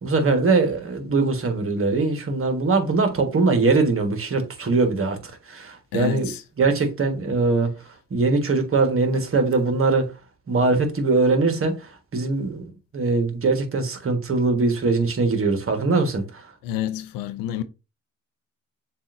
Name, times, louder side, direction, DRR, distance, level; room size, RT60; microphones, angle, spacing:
voice 1, 0.0-6.3 6.6-7.7 8.1-10.1 10.5-16.5, right 3 dB, 40° right, 1.4 m, -22 dB
voice 2, 5.9-6.4 16.6-17.6, left 11 dB, 75° left, 0.6 m, -28 dB
7.1 x 2.6 x 2.5 m
hypercardioid pair, 55°, 35 cm